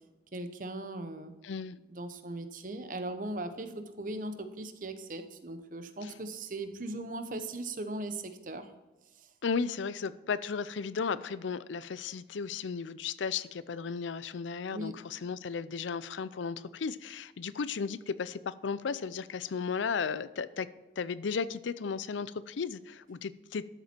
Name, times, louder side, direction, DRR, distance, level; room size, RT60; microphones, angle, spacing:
voice 1, 0.3-1.3 1.9-3.7 4.0-8.7 9.2-9.3 14.7-14.9, right 2 dB, 45° right, 8 dB, 0.9 m, -38 dB
voice 2, 1.4-1.8 6.0-6.1 9.4-20.7 21.0-23.6, left 5 dB, 90° left, 17 dB, 0.5 m, -35 dB
12.5 x 7.3 x 4.5 m, 1.1 s
head